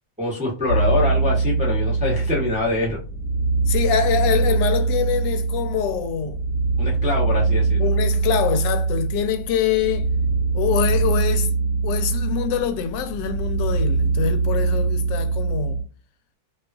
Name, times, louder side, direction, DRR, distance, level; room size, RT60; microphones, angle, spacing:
voice 1, 0.2-3.0 6.8-7.9, left 3 dB, 10° right, 0.4 m, -24 dB
sound 1, 0.7-15.8, right 4 dB, 70° left, 1.1 m, -22 dB
voice 2, 3.7-6.4 7.8-10.1 10.5-11.5 11.8-15.8, left 8 dB, 85° left, 1.2 m, -24 dB
2.9 x 2.3 x 2.3 m
omnidirectional pair, 1.9 m